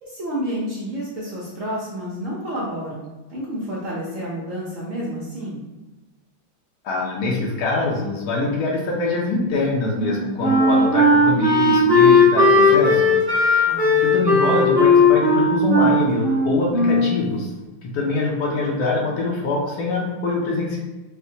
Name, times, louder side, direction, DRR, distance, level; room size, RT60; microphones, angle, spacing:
voice 1, 0.0-5.6 13.7-14.0, equal, 85° right, -7 dB, 0.6 m, -30 dB
voice 2, 6.8-13.1 14.0-17.5 17.9-20.8, left 3 dB, 80° left, -2 dB, 0.8 m, -24 dB
Wind instrument woodwind instrument, 10.0-17.2, left 2 dB, 15° right, 0.7 m, -16 dB
4.6 x 2.1 x 2.7 m, 1.2 s
omnidirectional pair, 2.3 m